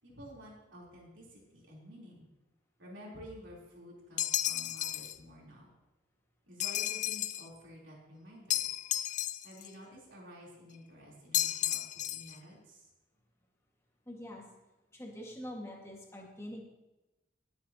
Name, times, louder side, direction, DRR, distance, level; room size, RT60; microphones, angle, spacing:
voice 1, 0.0-2.3 2.8-5.7 6.5-8.6 9.4-11.8 12.1-12.9, equal, 90° right, -4 dB, 3.5 m, -51 dB
sound 1, 4.2-5.2 6.6-7.5 8.5-9.7 11.3-12.4, left 12 dB, 40° left, 0.3 m, -33 dB
voice 2, 14.1-14.4 14.9-16.6, equal, 15° left, -1 dB, 1.7 m, -44 dB
19.0 x 7.7 x 2.9 m, 1.0 s
head